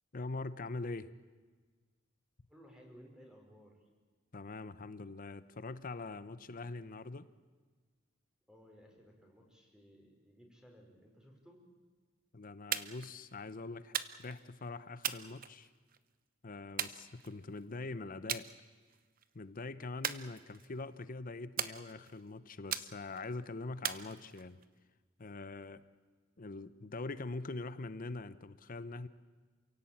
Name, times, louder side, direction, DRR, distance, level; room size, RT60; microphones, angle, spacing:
voice 1, 0.1-1.1 4.3-7.3 12.3-13.9 14.2-15.7 16.4-18.5 19.3-24.6 25.2-25.8 26.4-29.1, left 3 dB, 45° left, 14 dB, 0.8 m, -43 dB
voice 2, 2.5-3.9 8.5-11.6, equal, 5° right, 1 dB, 4.8 m, -59 dB
sound 1, 12.7-13.1 13.9-14.4 15.0-16.0 16.8-17.6 18.3-18.5 18.9-19.2 20.0-20.8 21.6-22.2 22.7-23.3 23.8-24.6, right 9 dB, 45° right, 0.9 m, -39 dB
28.0 x 17.0 x 8.6 m, 1.4 s
head